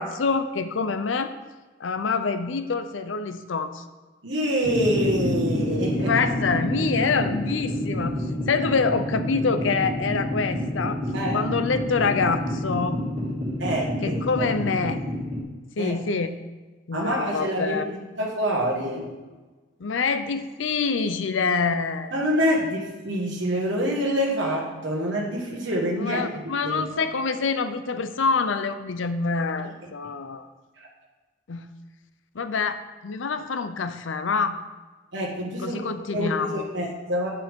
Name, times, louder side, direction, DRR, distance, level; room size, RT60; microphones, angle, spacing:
voice 1, 0.0-1.3 1.8-3.8 6.1-8.2 8.5-11.0 11.3-13.0 14.0-15.0 15.8-16.3 16.9-17.8 19.8-22.1 26.0-30.5 31.5-31.6 32.4-34.6 35.6-36.6, left 4 dB, 85° left, 10 dB, 0.6 m, -26 dB
voice 2, 4.2-6.1 11.1-11.5 13.6-14.5 15.8-16.0 16.9-19.1 22.1-27.0 29.6-29.7 35.1-35.8 36.1-37.3, equal, 70° right, -4 dB, 1.6 m, -26 dB
sound 1, 4.6-15.4, left 1 dB, 50° right, 3.1 m, -28 dB
9.0 x 8.6 x 3.6 m, 1.2 s
head